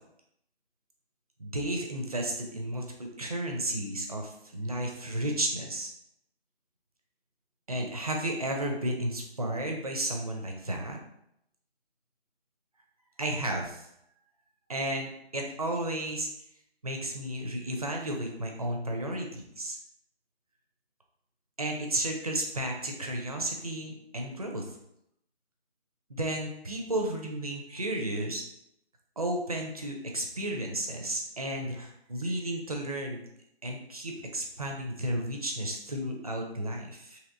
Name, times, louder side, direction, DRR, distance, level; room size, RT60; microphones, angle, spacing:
voice 1, 1.4-2.9 3.2-5.9 7.7-11.0 13.2-13.9 14.7-15.1 15.3-16.3 16.8-19.8 21.6-24.8 26.1-28.4 29.2-33.2 33.6-37.2, right 1 dB, 35° right, 1 dB, 0.4 m, -33 dB
2.9 x 2.9 x 2.5 m, 0.78 s
figure-of-eight pair, 155°, 33 cm